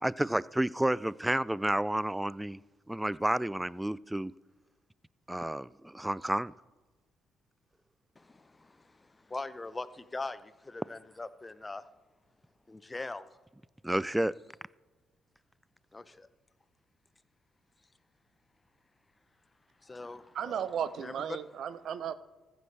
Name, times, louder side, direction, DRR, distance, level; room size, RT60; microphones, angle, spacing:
voice 1, 0.0-2.6 2.9-4.3 5.3-6.5 13.8-14.3, right 1 dB, 10° right, 21 dB, 0.3 m, -30 dB
voice 2, 8.2-11.9 12.7-13.3 15.9-16.3 19.8-20.6 21.0-21.4, left 3 dB, 25° left, 13 dB, 0.7 m, -42 dB
voice 3, 20.3-22.1, right 8 dB, 65° right, 14 dB, 0.6 m, -35 dB
14.5 x 7.9 x 3.3 m, 1.2 s
hypercardioid pair, 50°, 0 cm